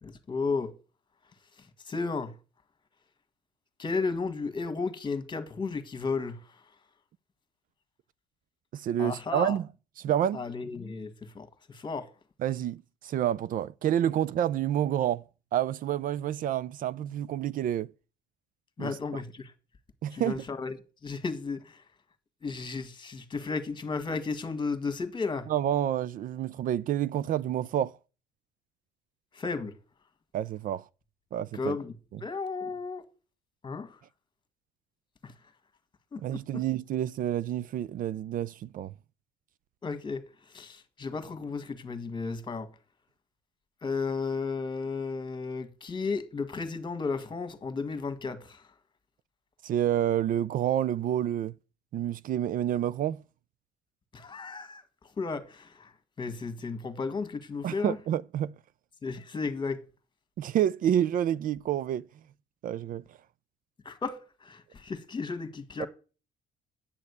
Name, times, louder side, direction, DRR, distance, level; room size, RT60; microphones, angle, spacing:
voice 1, 0.0-0.7 1.9-2.3 3.8-6.4 9.0-9.6 10.3-12.1 18.8-19.5 20.1-20.8 21.0-21.8 22.4-25.5 29.3-29.7 31.5-31.9 32.2-33.1 33.6-34.0 35.2-35.3 36.1-36.2 36.5-36.6 39.8-42.7 43.8-48.6 54.1-54.8 55.2-55.9 56.2-58.0 59.0-59.8 63.8-65.9, left 4 dB, 25° left, 1.6 m, -34 dB
voice 2, 8.7-9.7 10.0-10.4 12.4-15.2 15.5-17.9 18.8-19.2 20.0-20.4 25.5-27.9 30.3-30.8 31.3-31.8 36.2-38.9 49.6-51.5 51.9-53.2 57.6-58.5 60.4-62.1 62.6-63.0 65.8-65.9, right 11 dB, 55° right, 0.4 m, -29 dB
8.9 x 6.5 x 8.2 m
cardioid pair, 110°, 17 cm